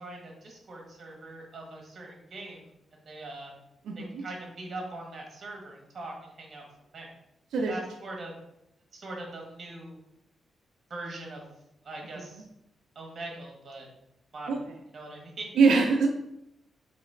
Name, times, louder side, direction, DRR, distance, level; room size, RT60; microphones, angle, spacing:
voice 1, 0.0-3.5 4.0-6.6 6.9-7.1 7.6-8.4 8.9-10.0 10.9-11.5 11.8-12.4 12.9-13.9 14.3-14.6 14.9-15.5, right 2 dB, 40° right, 0 dB, 1.1 m, -41 dB
voice 2, 3.9-4.2 7.5-7.7 14.5-14.6 15.6-16.1, right 4 dB, 90° right, 2 dB, 0.4 m, -22 dB
3.9 x 3.1 x 3.2 m, 0.84 s
wide cardioid pair, 155°, 0 cm